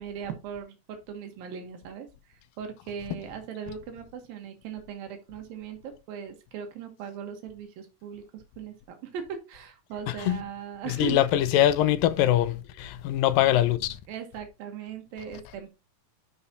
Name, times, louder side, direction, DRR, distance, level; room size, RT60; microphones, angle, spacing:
voice 1, 0.0-11.2 13.5-13.8 14.1-15.7, right 8 dB, 85° right, 3.1 m, -39 dB
voice 2, 10.1-10.4 10.9-14.0, left 12 dB, 85° left, 2.3 m, -23 dB
12.0 x 5.6 x 2.8 m
omnidirectional pair, 4.1 m